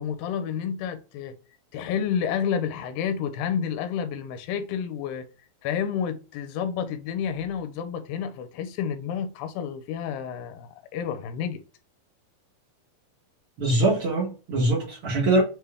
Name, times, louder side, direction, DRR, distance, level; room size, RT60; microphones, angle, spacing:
voice 1, 0.0-1.4 1.7-5.3 5.6-11.6, left 8 dB, 80° left, 2.3 m, -30 dB
voice 2, 13.6-15.4, right 2 dB, 65° right, 1.3 m, -23 dB
6.3 x 2.2 x 3.4 m
omnidirectional pair, 4.2 m